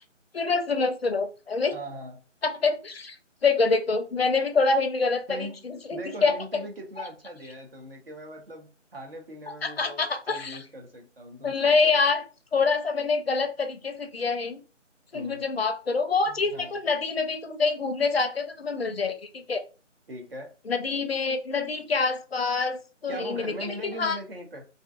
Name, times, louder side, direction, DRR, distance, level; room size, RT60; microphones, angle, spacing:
voice 1, 0.3-1.7 2.4-3.2 3.4-6.4 7.0-7.1 9.6-10.6 11.4-12.2 12.5-14.6 15.1-19.6 20.7-24.2, left 4 dB, 55° left, 0.4 m, -26 dB
voice 2, 1.7-2.2 5.3-5.6 5.9-12.0 15.1-15.5 16.3-16.7 20.1-20.5 23.1-24.7, equal, 50° right, 0.7 m, -40 dB
2.5 x 2.2 x 2.4 m
figure-of-eight pair, 160°, 37 cm